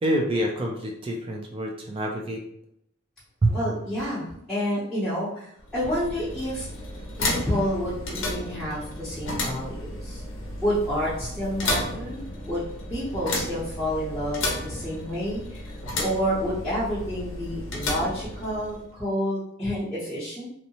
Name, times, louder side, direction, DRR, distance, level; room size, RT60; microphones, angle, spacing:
voice 1, 0.0-2.4 3.4-3.6, right 1 dB, 25° right, 1 dB, 0.3 m, -26 dB
voice 2, 3.5-6.7 7.2-10.2 10.6-15.7 16.0-20.5, equal, 5° left, -12 dB, 0.7 m, -29 dB
sound 1, 5.6-18.9, left 1 dB, 60° left, 0.6 m, -33 dB
2.7 x 2.0 x 2.8 m, 0.70 s
head